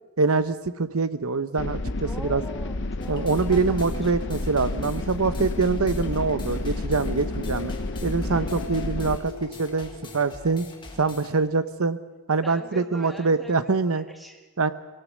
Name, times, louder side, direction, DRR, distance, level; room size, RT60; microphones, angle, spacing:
voice 1, 0.2-1.8 2.2-2.4 3.1-7.7 8.0-10.7 11.0-12.0 12.3-14.1 14.6-14.7, right 4 dB, 80° right, 13 dB, 0.9 m, -24 dB
sound 1, 1.6-9.2, left 2 dB, 55° left, 0.9 m, -30 dB
voice 2, 2.0-3.6 3.9-4.2 8.3-8.6 12.4-14.5, equal, ahead, 3 dB, 1.7 m, -43 dB
sound 2, 3.0-11.4, left 2 dB, 20° left, 1.8 m, -44 dB
sound 3, 7.0-11.4, left 4 dB, 70° left, 4.7 m, -41 dB
22.5 x 17.5 x 7.4 m, 1.2 s
head